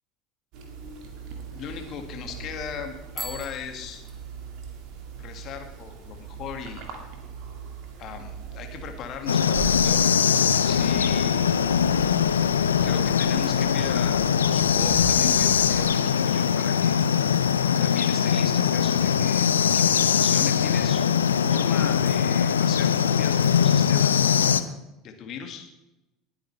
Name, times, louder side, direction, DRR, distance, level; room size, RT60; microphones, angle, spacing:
sound 1, 0.5-15.9, right 5 dB, 50° right, 2.1 m, -40 dB
voice 1, 1.5-4.0 5.2-6.8 8.0-10.0 10.7-11.5 12.8-14.2 14.5-17.0 17.8-21.0 21.5-24.1 25.0-25.7, left 7 dB, 45° left, 5 dB, 2.0 m, -37 dB
Bicycle bell, 3.1-4.8, right 1 dB, 15° right, 1.4 m, -41 dB
sound 2, 9.3-24.6, left 7 dB, 75° left, 0.5 m, -21 dB
20.0 x 8.7 x 3.3 m, 0.96 s
figure-of-eight pair, 70°, 0 cm